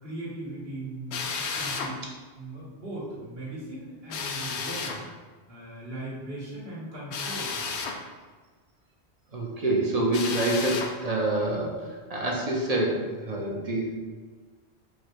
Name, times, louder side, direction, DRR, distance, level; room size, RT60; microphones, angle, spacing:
voice 1, 0.0-2.0 2.3-5.0 5.5-7.6, right 1 dB, 65° right, -7 dB, 1.8 m, -38 dB
Drill, 1.1-1.9 4.1-5.0 7.1-8.0 10.1-10.9, left 5 dB, 80° left, 0.9 m, -32 dB
voice 2, 9.3-11.7 12.1-13.9, right 1 dB, 40° right, -2 dB, 0.8 m, -26 dB
4.8 x 2.3 x 4.6 m, 1.4 s
omnidirectional pair, 1.1 m